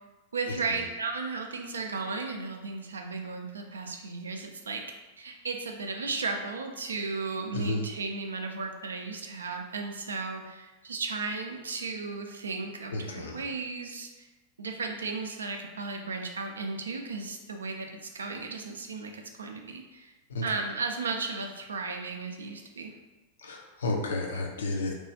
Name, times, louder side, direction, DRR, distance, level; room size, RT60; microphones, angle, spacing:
voice 1, 0.3-4.8 5.2-14.1 14.6-20.1 20.4-22.9, right 4 dB, 70° right, 3 dB, 0.3 m, -35 dB
voice 2, 7.5-7.9 12.9-13.4 20.3-20.4 23.4-24.9, left 2 dB, 65° left, 2 dB, 0.4 m, -31 dB
2.9 x 2.3 x 2.7 m, 1.2 s
figure-of-eight pair, 90°, 0 cm